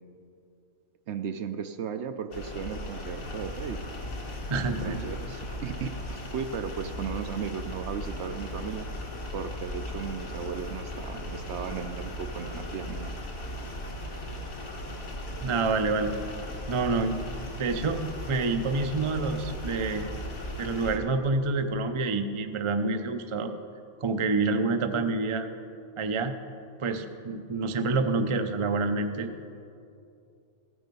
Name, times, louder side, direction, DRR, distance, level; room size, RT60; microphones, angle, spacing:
voice 1, 1.1-3.8 4.5-8.9 9.3-13.1, right 7 dB, 65° right, 9 dB, 0.8 m, -36 dB
sound 1, 2.3-21.0, left 1 dB, 80° left, 2.0 m, -37 dB
voice 2, 4.5-5.0 15.4-16.1 16.7-17.2 17.6-20.1 20.6-23.5 24.0-25.5 26.0-26.3 26.8-29.3, right 3 dB, 40° right, 7 dB, 0.4 m, -27 dB
15.0 x 9.6 x 5.3 m, 2.6 s
omnidirectional pair, 1.4 m